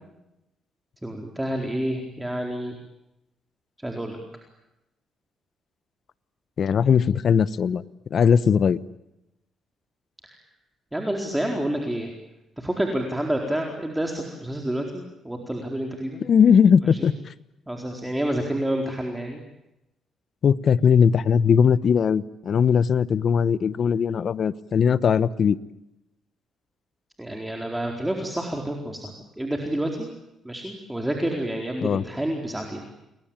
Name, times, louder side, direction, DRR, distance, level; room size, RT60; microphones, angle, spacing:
voice 1, 1.0-2.8 3.8-4.2 10.2-10.3 10.9-12.1 12.6-16.2 17.7-19.4 27.2-30.1 30.4-32.9, right 1 dB, 10° right, 2 dB, 4.4 m, -29 dB
voice 2, 6.6-7.8 8.1-8.8 16.2-17.1 20.4-25.6 31.8-32.0, left 7 dB, 55° left, 17 dB, 1.0 m, -19 dB
29.5 x 22.0 x 9.0 m, 0.90 s
cardioid pair, 90°, 0 cm